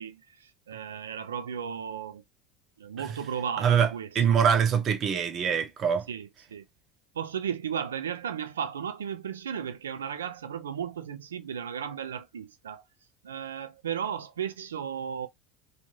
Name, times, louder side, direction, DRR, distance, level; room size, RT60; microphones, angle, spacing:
voice 1, 0.0-2.2 2.8-4.6 6.1-6.7 7.1-12.8 13.2-15.3, right 8 dB, 90° right, 0.4 m, -35 dB
voice 2, 3.6-3.9 4.1-6.1, right 7 dB, 45° right, 0.7 m, -23 dB
2.5 x 2.4 x 3.0 m
hypercardioid pair, 80°, 0 cm